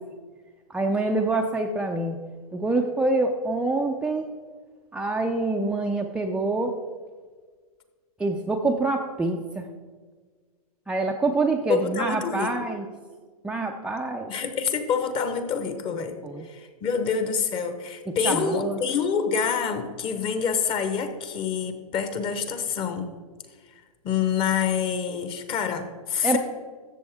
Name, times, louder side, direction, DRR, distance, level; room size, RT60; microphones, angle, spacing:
voice 1, 0.7-2.2 2.5-4.3 4.9-6.7 8.2-9.7 10.9-12.9 13.4-14.3 16.2-16.5 18.2-18.8 26.2-26.4, right 2 dB, 5° right, 0 dB, 0.5 m, -26 dB
voice 2, 11.6-12.7 14.3-23.1 24.0-26.4, left 6 dB, 25° left, 9 dB, 1.0 m, -27 dB
13.5 x 7.5 x 3.5 m, 1.5 s
hypercardioid pair, 130°, 19 cm